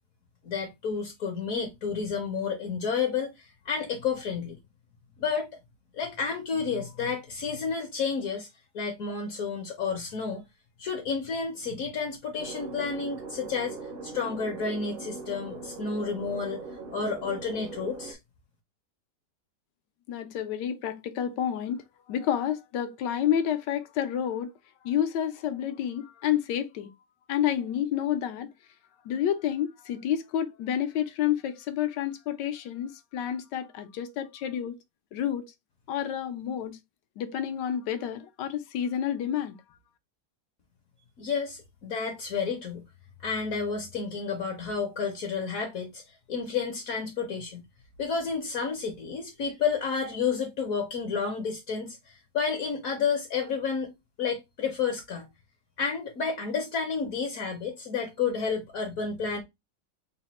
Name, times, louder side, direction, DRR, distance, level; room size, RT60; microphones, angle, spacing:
voice 1, 0.4-4.6 5.2-5.5 5.9-8.5 8.7-10.4 10.8-16.6 16.9-18.2 41.2-42.9 43.2-46.0 46.3-47.7 48.0-53.9 54.2-55.3 55.8-59.4, left 5 dB, 60° left, 1.0 m, -31 dB
sound 1, 12.4-18.1, right 4 dB, 60° right, 0.6 m, -40 dB
voice 2, 20.1-21.8 22.1-24.5 24.8-26.9 27.3-28.5 29.1-34.8 35.1-35.4 35.9-36.8 37.2-39.6, left 10 dB, 80° left, 1.2 m, -29 dB
4.0 x 2.1 x 4.0 m
omnidirectional pair, 1.9 m